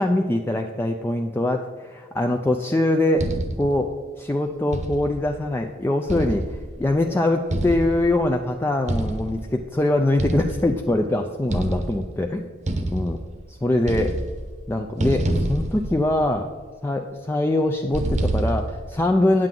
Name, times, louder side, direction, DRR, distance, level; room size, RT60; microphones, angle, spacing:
voice 1, 0.0-3.3 3.6-12.5 12.9-13.2 13.5-14.2 14.7-16.5 16.8-19.5, left 1 dB, 10° left, 3 dB, 0.3 m, -23 dB
sound 1, 3.2-3.8 4.7-5.3 6.1-6.9 7.5-8.3 8.9-9.5 10.2-11.0 11.5-12.2 12.7-13.5 13.8-14.6 15.0-16.5 17.9-18.9, right 1 dB, 35° right, 0.8 m, -27 dB
8.9 x 7.6 x 3.8 m, 1.5 s
head